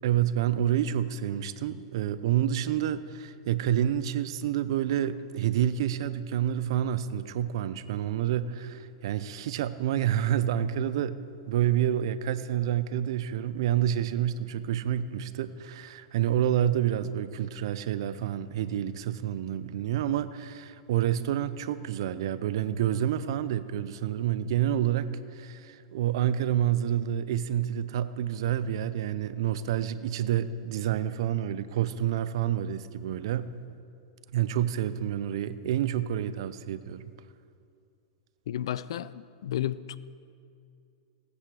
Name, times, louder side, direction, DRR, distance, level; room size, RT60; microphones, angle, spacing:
voice 1, 0.0-11.2 11.5-33.5 34.3-37.1, right 10 dB, 65° right, 14 dB, 0.7 m, -28 dB
voice 2, 38.5-40.0, left 11 dB, 70° left, 17 dB, 0.5 m, -32 dB
18.0 x 9.7 x 4.9 m, 2.4 s
hypercardioid pair, 115°, 3 cm